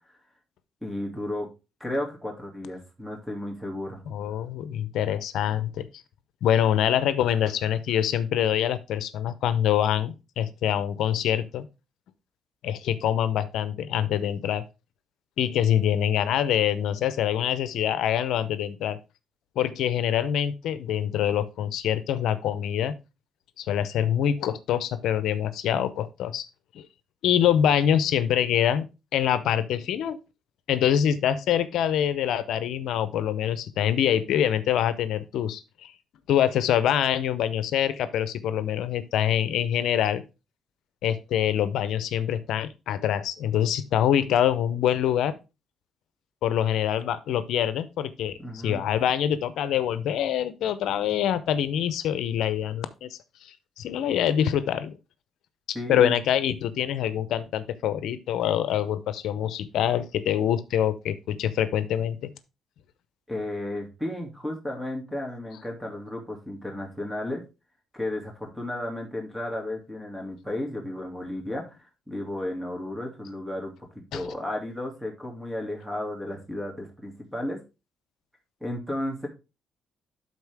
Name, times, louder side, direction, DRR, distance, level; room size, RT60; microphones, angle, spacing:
voice 1, 0.8-1.5 1.8-4.0 48.4-48.8 55.7-56.2 63.3-67.4 67.9-73.7 74.1-77.6 78.6-79.3, left 1 dB, ahead, 1 dB, 2.6 m, -33 dB
voice 2, 4.1-5.9 6.4-11.7 12.6-14.6 15.4-19.0 19.6-22.9 23.6-26.5 26.7-26.9 27.2-28.9 29.1-30.2 30.7-35.9 36.3-40.2 41.0-45.4 46.4-48.4 48.6-55.0 55.9-62.3 74.1-74.2, left 10 dB, 80° left, 14 dB, 0.7 m, -25 dB
12.0 x 4.1 x 3.5 m, 0.28 s
cardioid pair, 90°, 0 cm